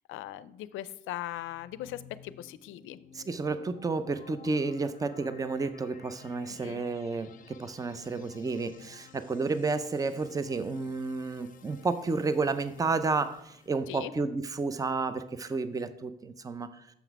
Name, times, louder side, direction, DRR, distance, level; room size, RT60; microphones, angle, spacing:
voice 1, 0.1-3.0 6.5-6.8 13.9-14.1, left 13 dB, 85° left, 16 dB, 0.4 m, -39 dB
sound 1, 1.3-13.9, left 8 dB, 45° left, 0.6 m, -54 dB
voice 2, 3.1-16.9, right 4 dB, 20° right, 12 dB, 0.5 m, -31 dB
7.1 x 5.9 x 4.6 m, 0.77 s
cardioid pair, 90°, 20 cm